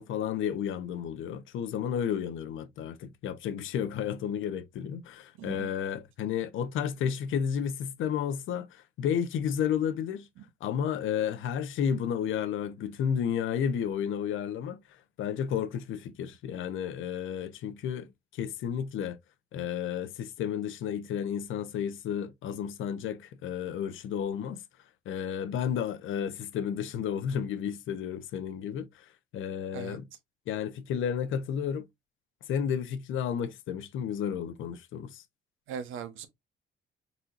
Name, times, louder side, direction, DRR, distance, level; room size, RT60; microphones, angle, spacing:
voice 1, 0.0-10.3 10.6-14.8 15.2-18.1 18.3-19.2 19.5-24.6 25.1-29.0 29.3-30.1 30.5-31.8 32.5-35.2, left 8 dB, 80° left, 0.8 m, -32 dB
voice 2, 5.4-5.7 29.7-30.0 35.7-36.3, right 8 dB, 90° right, 1.1 m, -39 dB
4.4 x 4.1 x 2.5 m
cardioid pair, 90°, 20 cm